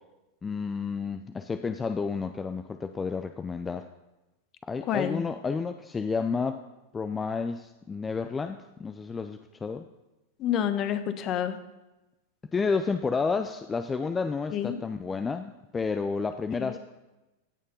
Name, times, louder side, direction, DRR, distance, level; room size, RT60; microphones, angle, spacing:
voice 1, 0.4-3.9 4.7-6.6 6.9-9.9 12.5-16.8, left 5 dB, 20° left, 8 dB, 0.6 m, -31 dB
voice 2, 4.9-5.2 10.4-11.6 14.5-14.8 16.6-16.8, left 9 dB, 40° left, 10 dB, 1.2 m, -28 dB
16.5 x 6.6 x 5.5 m, 1.0 s
hypercardioid pair, 100°, 0 cm